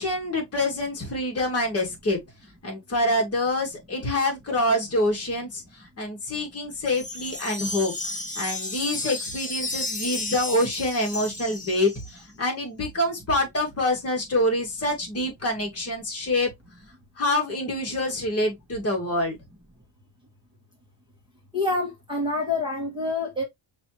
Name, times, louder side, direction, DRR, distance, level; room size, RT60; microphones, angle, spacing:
voice 1, 0.0-2.2 2.6-16.5 17.2-19.4, left 1 dB, 30° left, 1.9 m, -26 dB
Wind chime, 6.8-12.2, left 2 dB, 15° left, 1.3 m, -33 dB
voice 2, 21.5-23.4, left 2 dB, 10° right, 1.5 m, -27 dB
5.9 x 3.0 x 2.8 m
cardioid pair, 155°, 45 cm